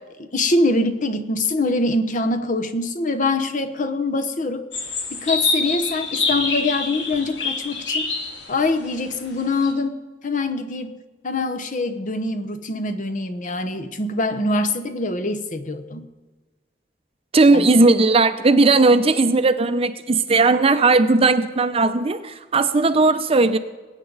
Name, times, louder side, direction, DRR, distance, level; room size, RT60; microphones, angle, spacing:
voice 1, 0.3-4.6 5.1-8.1 8.5-11.0 11.2-16.0 17.5-17.7, left 2 dB, 45° left, 9 dB, 0.9 m, -24 dB
sound 1, 4.7-9.7, left 3 dB, 75° left, 2.0 m, -26 dB
voice 2, 17.3-23.6, right 3 dB, 35° right, 10 dB, 0.6 m, -17 dB
20.5 x 9.0 x 4.0 m, 1.3 s
head